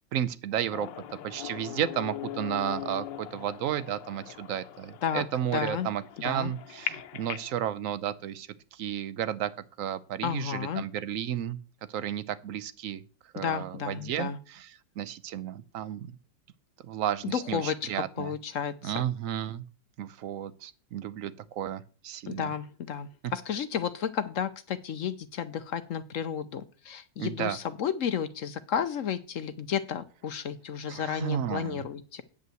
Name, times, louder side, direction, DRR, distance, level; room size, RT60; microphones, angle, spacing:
voice 1, 0.1-0.9 1.2-9.5 9.8-11.6 11.9-13.0 13.3-16.2 16.9-18.3 18.8-19.6 20.0-22.5 27.2-27.6 30.9-31.8, right 10 dB, 60° right, 14 dB, 0.9 m, -33 dB
sound 1, 0.7-7.6, left 11 dB, 90° left, 1.5 m, -40 dB
voice 2, 5.5-5.9 6.2-6.5 10.2-10.8 13.4-14.4 17.2-19.0 22.3-32.2, left 8 dB, 60° left, 12 dB, 0.9 m, -32 dB
9.3 x 5.5 x 7.6 m, 0.37 s
omnidirectional pair, 1.9 m